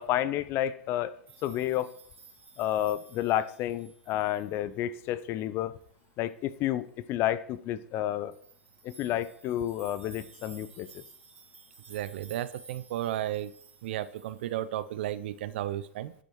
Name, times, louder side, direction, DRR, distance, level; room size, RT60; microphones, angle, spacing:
voice 1, 0.0-1.9 2.6-5.7 6.2-8.3 8.8-11.0, left 12 dB, 35° left, 16 dB, 0.5 m, -30 dB
sound 1, 1.3-4.7 5.4-5.5 5.8-5.9 8.3-14.9, right 5 dB, 85° right, 2.3 m, -54 dB
voice 2, 11.9-13.5 13.8-16.1, right 12 dB, 60° right, 15 dB, 0.5 m, -33 dB
9.7 x 7.7 x 3.1 m, 0.64 s
hypercardioid pair, 105°, 7 cm